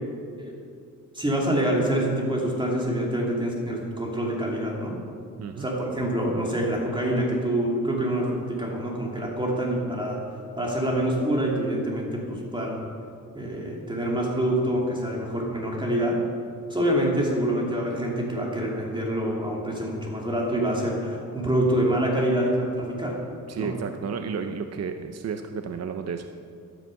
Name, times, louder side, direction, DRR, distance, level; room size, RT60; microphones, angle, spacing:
voice 1, 1.1-5.0 5.6-10.2 10.6-12.8 13.3-16.2 16.7-23.2 23.5-23.7, right 1 dB, 15° right, -2 dB, 2.6 m, -26 dB
voice 2, 23.5-26.3, right 6 dB, 50° right, 6 dB, 0.8 m, -32 dB
14.0 x 12.0 x 6.4 m, 2.3 s
cardioid pair, 120°, 34 cm